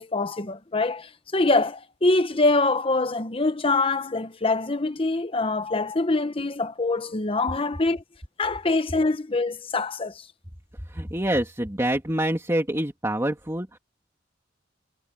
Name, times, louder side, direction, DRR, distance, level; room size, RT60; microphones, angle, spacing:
voice 1, 0.0-8.0 8.4-10.2, left 2 dB, 30° left, 1.0 m, -24 dB
voice 2, 10.9-13.8, right 1 dB, 15° right, 2.7 m, -26 dB
head